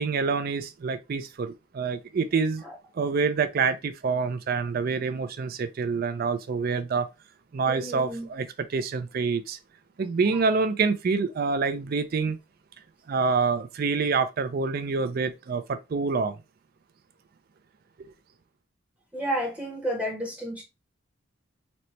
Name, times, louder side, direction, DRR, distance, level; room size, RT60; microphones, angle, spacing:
voice 1, 0.0-2.6 2.9-7.1 7.5-9.6 10.0-12.4 13.1-16.3, right 4 dB, 45° right, 0.4 m, -27 dB
voice 2, 7.7-8.3 19.1-20.6, equal, 5° right, 0.8 m, -31 dB
4.1 x 2.1 x 3.0 m
head